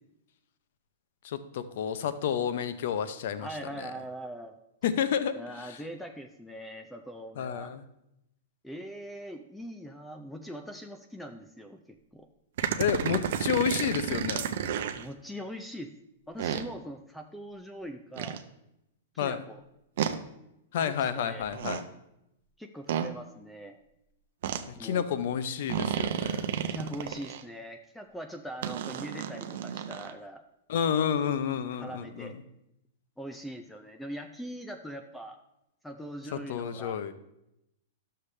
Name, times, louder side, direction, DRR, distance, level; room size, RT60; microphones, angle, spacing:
voice 1, 1.2-3.5 3.8-3.9 4.8-5.8 7.4-7.8 12.8-14.5 19.2-19.4 20.7-21.9 24.7-26.5 30.7-32.3 36.3-37.1, left 8 dB, 55° left, 12 dB, 0.7 m, -30 dB
voice 2, 3.4-4.6 5.3-7.8 8.6-12.3 15.0-15.9 16.3-18.4 19.1-19.6 20.8-21.5 22.6-23.8 24.8-25.1 26.6-30.4 31.7-32.3 33.2-35.4 35.8-37.0, equal, ahead, 5 dB, 0.4 m, -42 dB
sound 1, 12.6-15.0 16.4-16.6 18.2-18.4 20.0-20.2 21.4-21.8 22.9-23.1 24.4-24.6 25.7-27.4 28.6-30.1, right 9 dB, 55° right, 0.6 m, -31 dB
11.0 x 6.7 x 3.3 m, 0.85 s
supercardioid pair, 170°, 0 cm